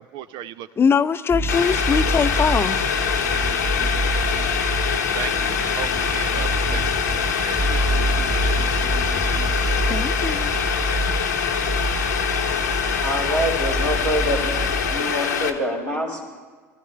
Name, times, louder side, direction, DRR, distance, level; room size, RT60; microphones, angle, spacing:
voice 1, 0.0-0.7 5.1-6.8 7.1-8.0, right 11 dB, 55° right, 0.5 m, -35 dB
voice 2, 0.8-2.9 9.9-10.5, left 6 dB, 25° left, 0.6 m, -22 dB
sound 1, 1.3-15.0, right 1 dB, 5° right, 1.0 m, -27 dB
Boiling, 1.5-15.5, left 7 dB, 85° left, 1.1 m, -24 dB
voice 3, 13.0-14.5 14.8-16.2, equal, 90° right, 3.5 m, -25 dB
22.5 x 14.0 x 3.2 m
hypercardioid pair, 70°, 9 cm